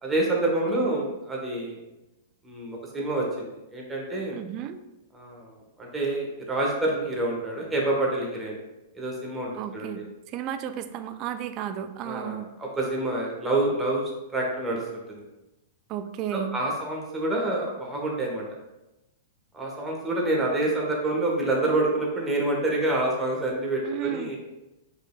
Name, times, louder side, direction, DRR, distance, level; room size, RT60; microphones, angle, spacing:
voice 1, 0.0-1.8 2.4-4.4 5.1-8.6 8.9-10.0 12.0-14.0 14.3-14.8 15.1-15.2 16.3-18.4 19.5-24.4, right 2 dB, 15° right, -2 dB, 1.3 m, -27 dB
voice 2, 4.3-4.8 9.5-12.5 15.9-16.6 23.8-24.4, right 10 dB, 40° right, 10 dB, 0.4 m, -33 dB
5.1 x 4.2 x 2.3 m, 0.98 s
figure-of-eight pair, 105°, 0 cm